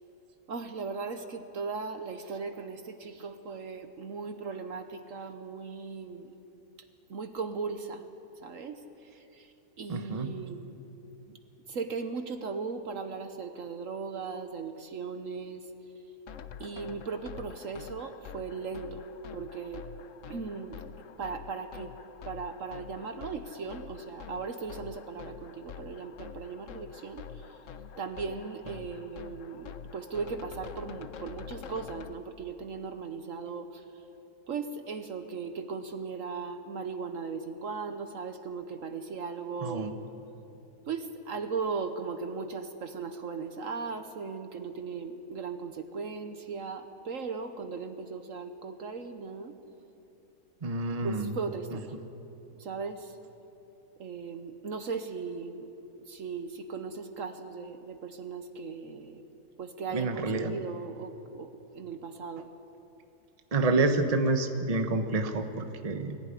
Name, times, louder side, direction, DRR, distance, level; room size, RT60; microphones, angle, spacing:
voice 1, 0.5-6.3 7.1-8.1 8.4-10.7 11.3-11.4 11.7-15.7 16.6-19.9 20.3-20.8 21.2-21.9 22.2-27.6 28.0-34.1 34.5-39.9 40.9-49.5 51.0-52.0 52.5-53.2 54.0-59.2 59.6-62.5, right 5 dB, 60° right, 8 dB, 1.3 m, -38 dB
voice 2, 9.9-10.3 39.6-39.9 50.6-51.3 51.7-51.8 59.9-60.5 63.5-66.2, right 3 dB, 25° right, 6 dB, 1.0 m, -28 dB
sound 1, 16.3-32.1, left 7 dB, 60° left, 1.0 m, -46 dB
21.5 x 15.0 x 9.9 m, 2.9 s
omnidirectional pair, 1.6 m